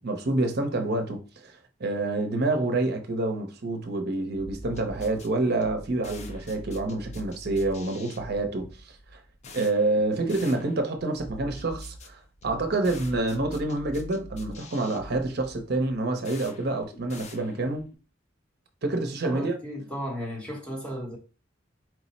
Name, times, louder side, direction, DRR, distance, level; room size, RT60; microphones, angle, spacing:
voice 1, 0.0-9.2 9.5-17.8 18.8-19.5, right 2 dB, 55° right, 0.6 m, -28 dB
sound 1, 4.3-17.9, equal, 35° left, 0.5 m, -44 dB
voice 2, 19.2-21.2, equal, 5° left, 0.8 m, -35 dB
4.5 x 2.0 x 4.0 m
head